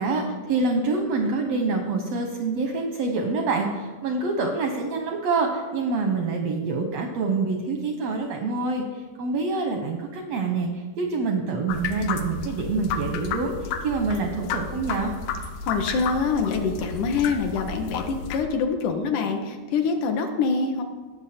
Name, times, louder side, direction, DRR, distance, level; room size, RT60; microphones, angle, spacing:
voice 1, 0.0-15.1, right 3 dB, 75° right, 4 dB, 1.5 m, -26 dB
sound 1, 11.7-18.4, left 6 dB, 90° left, 2.4 m, -32 dB
voice 2, 15.7-20.9, left 5 dB, 75° left, 5 dB, 2.2 m, -25 dB
17.0 x 6.5 x 4.2 m, 1.4 s
omnidirectional pair, 3.8 m